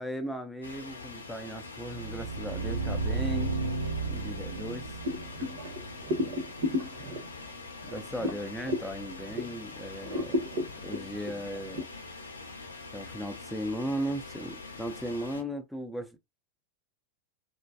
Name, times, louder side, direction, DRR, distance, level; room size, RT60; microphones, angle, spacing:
voice 1, 0.0-3.5 4.1-4.8 7.8-10.4 10.8-11.8 12.9-16.2, equal, ahead, 0.4 m, -37 dB
sound 1, 0.6-15.4, left 3 dB, 80° left, 0.6 m, -44 dB
sound 2, 1.8-6.7, right 3 dB, 85° right, 0.5 m, -34 dB
sound 3, 5.0-9.6 10.0-11.8, left 2 dB, 50° right, 0.6 m, -34 dB
2.4 x 2.2 x 2.3 m
figure-of-eight pair, 90°, 0 cm